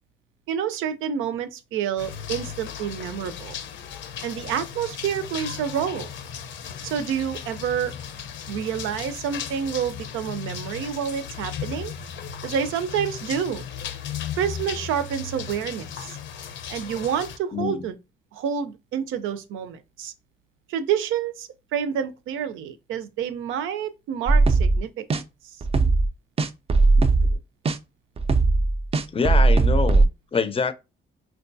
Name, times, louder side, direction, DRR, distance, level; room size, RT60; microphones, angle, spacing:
voice 1, 0.5-3.6 4.2-6.1 6.8-7.9 8.5-11.9 12.4-13.6 14.4-16.2 16.7-18.0 18.3-20.1 20.7-25.6, right 8 dB, 85° right, 0.5 m, -28 dB
sound 1, 2.0-17.4, left 8 dB, 70° left, 0.6 m, -36 dB
voice 2, 17.5-17.8 25.7-25.9 27.0-27.1 29.1-30.7, left 5 dB, 30° left, 0.5 m, -26 dB
sound 2, 24.3-24.8 25.1-25.2 25.6-26.1 26.4-27.4 27.7-27.8 28.2-30.1, right 3 dB, 30° right, 0.4 m, -18 dB
4.5 x 2.3 x 2.6 m
cardioid pair, 90°, 20 cm